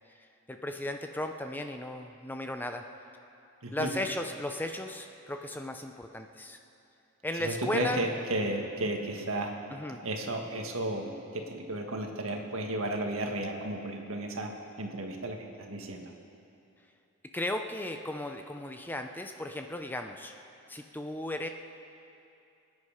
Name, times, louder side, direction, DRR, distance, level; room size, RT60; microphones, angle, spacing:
voice 1, 0.5-2.8 3.7-6.6 7.2-8.0 9.7-10.0 17.3-20.3 20.7-21.5, left 1 dB, 10° left, 5 dB, 0.5 m, -35 dB
voice 2, 7.4-9.5 10.0-14.5 14.8-16.1, right 1 dB, 70° right, 2 dB, 1.7 m, -33 dB
24.5 x 9.7 x 5.0 m, 2.7 s
head